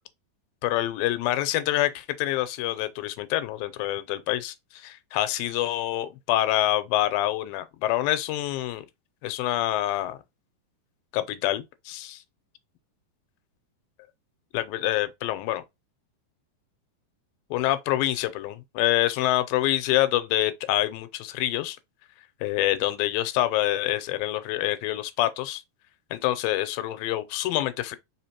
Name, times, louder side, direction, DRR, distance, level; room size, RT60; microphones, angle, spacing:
voice 1, 0.6-8.9 9.2-10.2 11.1-12.2 14.5-15.6 17.5-21.8 22.4-25.6 26.1-28.0, left 14 dB, 85° left, 2.3 m, -26 dB
5.0 x 3.6 x 2.8 m
omnidirectional pair, 4.1 m